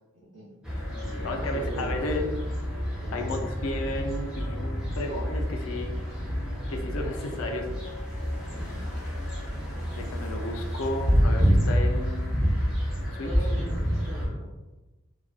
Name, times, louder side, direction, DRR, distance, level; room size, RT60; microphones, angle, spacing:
voice 1, 0.1-0.5 1.0-1.9 3.0-3.4 13.2-14.5, right 1 dB, 55° right, -6 dB, 0.5 m, -40 dB
Black Francolin Larnaca, 0.6-14.3, equal, 5° right, 0.4 m, -28 dB
voice 2, 1.2-2.3 3.1-5.9 6.7-7.7 9.9-12.3 13.0-13.3, left 1 dB, 65° left, 3 dB, 0.4 m, -33 dB
2.5 x 2.1 x 2.3 m, 1.1 s
head